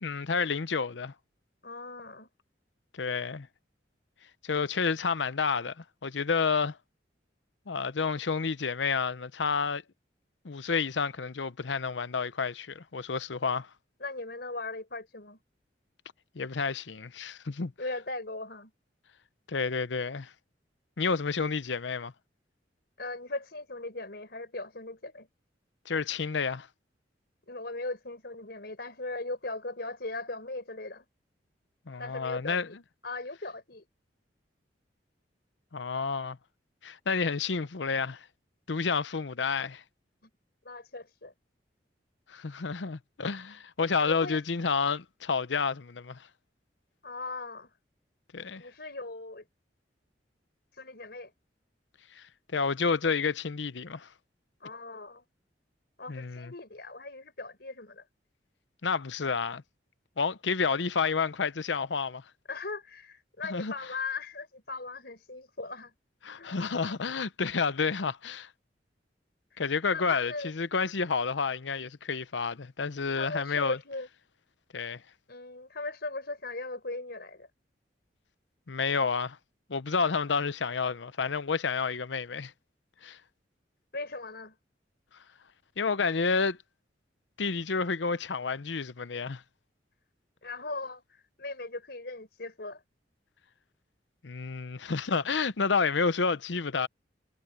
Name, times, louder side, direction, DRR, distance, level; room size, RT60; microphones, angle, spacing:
voice 1, 0.0-1.1 2.9-3.5 4.4-6.8 7.7-9.8 10.4-13.7 16.3-17.7 19.5-20.3 21.0-22.1 25.9-26.7 31.9-32.7 35.7-36.4 36.8-38.3 38.7-39.8 42.3-46.3 48.3-48.6 52.1-52.3 52.5-54.1 56.1-56.5 58.8-59.6 60.2-62.2 63.4-63.7 66.2-68.5 69.6-73.8 74.7-75.0 78.7-79.4 79.7-82.5 83.0-83.2 85.8-86.6 87.4-89.4 94.2-96.9, left 5 dB, 85° left, 0.8 m, -30 dB
voice 2, 1.6-2.3 14.0-15.4 17.8-18.7 23.0-25.3 27.5-31.0 32.0-32.8 33.0-33.8 40.6-41.3 44.0-44.4 47.0-47.7 48.6-49.4 50.8-51.3 54.6-55.2 56.0-58.0 62.5-65.9 66.4-66.5 69.5-69.6 69.9-70.5 73.1-74.1 75.3-77.5 83.9-84.5 90.4-91.0 91.4-92.8, left 3 dB, 60° left, 5.1 m, -38 dB
head